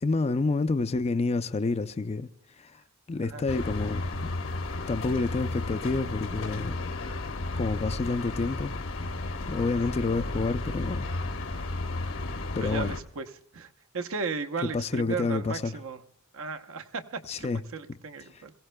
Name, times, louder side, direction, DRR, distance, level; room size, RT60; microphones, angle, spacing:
voice 1, 0.0-2.3 2.6-2.8 3.1-4.3 4.9-6.8 7.6-8.7 9.5-11.1 12.6-13.0 14.6-15.8 17.3-17.6 18.3-18.4, left 3 dB, 30° left, 0.4 m, -28 dB
sound 1, 3.5-13.0, left 2 dB, 65° left, 1.0 m, -33 dB
voice 2, 12.6-13.3 13.5-13.7 13.9-16.0 16.3-18.5, right 4 dB, 65° right, 0.9 m, -35 dB
22.0 x 16.5 x 2.2 m
head